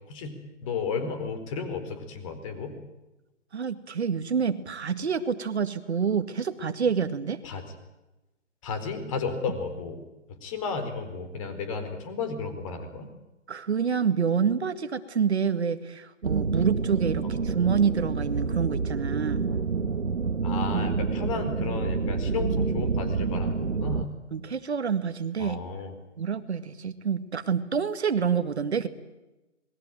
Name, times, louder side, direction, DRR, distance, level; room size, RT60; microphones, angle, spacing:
voice 1, 0.6-2.7 7.4-7.6 8.6-13.1 17.2-17.4 20.4-24.1 25.4-25.9, left 5 dB, 25° left, 9 dB, 4.3 m, -33 dB
voice 2, 3.5-7.4 13.5-19.4 24.3-25.6 26.2-28.9, right 6 dB, 60° right, 10 dB, 2.1 m, -27 dB
sound 1, 16.2-24.1, right 5 dB, 75° right, 2.0 m, -28 dB
27.5 x 21.5 x 9.2 m, 1.0 s
hypercardioid pair, 155°, 37 cm